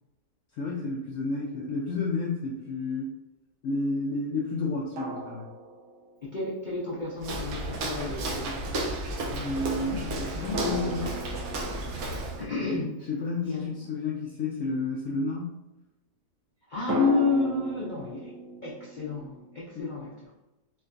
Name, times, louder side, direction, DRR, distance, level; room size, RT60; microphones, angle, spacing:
voice 1, 0.5-3.1 3.6-5.5 9.3-11.2 13.1-15.6 19.8-19.9, left 3 dB, 65° left, -4 dB, 0.8 m, -31 dB
sound 1, 1.4-1.5 5.0-6.5 10.5-14.2 16.9-19.6, left 1 dB, 90° right, 1.3 m, -36 dB
voice 2, 6.2-8.9 12.4-13.1 13.4-13.7 16.7-18.3 18.6-20.3, left 4 dB, 85° left, -6 dB, 0.4 m, -30 dB
Walk footsteps, 7.2-12.5, right 2 dB, 65° right, 1.0 m, -33 dB
4.5 x 2.2 x 2.5 m, 0.96 s
omnidirectional pair, 1.8 m